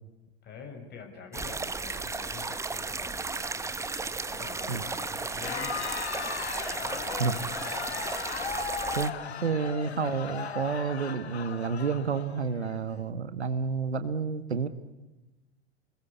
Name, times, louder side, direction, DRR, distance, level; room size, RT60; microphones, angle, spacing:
voice 1, 0.4-3.6 4.3-5.9 6.7-8.1 9.0-9.5, left 5 dB, 30° left, 4 dB, 6.3 m, -46 dB
sound 1, 1.3-9.1, right 3 dB, 10° right, 1.3 m, -34 dB
Crowd, 5.2-12.8, left 7 dB, 75° left, 1.9 m, -37 dB
voice 2, 9.4-14.7, right 5 dB, 80° right, 11 dB, 1.7 m, -30 dB
28.5 x 21.5 x 8.4 m, 1.0 s
figure-of-eight pair, 95°, 33 cm